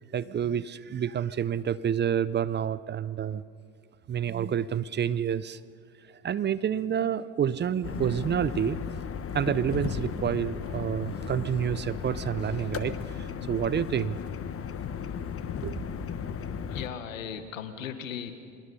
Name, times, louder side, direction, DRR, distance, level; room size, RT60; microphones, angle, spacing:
voice 1, 0.1-3.4 4.1-5.6 6.2-8.8 9.3-14.2 15.6-15.8, right 8 dB, 25° right, 0.6 m, -28 dB
sound 1, 7.8-16.9, left 7 dB, 35° left, 1.4 m, -35 dB
voice 2, 16.7-18.3, left 8 dB, 85° left, 1.5 m, -37 dB
25.0 x 21.5 x 5.5 m
hypercardioid pair, 75°, 39 cm